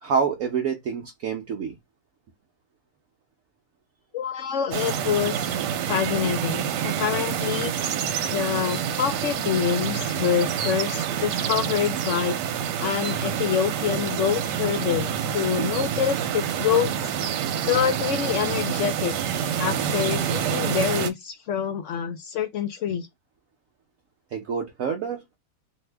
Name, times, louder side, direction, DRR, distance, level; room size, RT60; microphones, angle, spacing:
voice 1, 0.0-1.8 24.3-25.2, right 6 dB, 65° right, 0.9 m, -27 dB
voice 2, 4.1-5.6 5.9-7.7 8.3-12.4 12.8-16.9 17.7-19.1 19.6-23.1, left 8 dB, 70° left, 0.7 m, -26 dB
sound 1, 4.7-21.1, right 8 dB, 85° right, 1.2 m, -27 dB
2.7 x 2.6 x 3.3 m
omnidirectional pair, 1.8 m